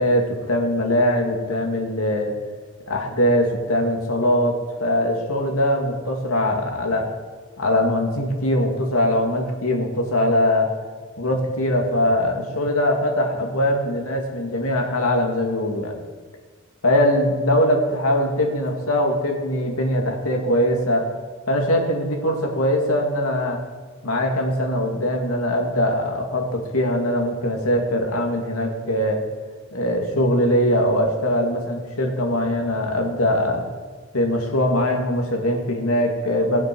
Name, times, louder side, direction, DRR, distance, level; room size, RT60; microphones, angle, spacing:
voice 1, 0.0-2.3 2.9-7.1 7.6-10.7 11.2-16.0 16.8-21.1 21.5-23.6 24.0-29.2 29.7-33.6 34.1-36.6, left 1 dB, 85° left, 1 dB, 2.5 m, -21 dB
20.0 x 7.3 x 6.3 m, 1.4 s
head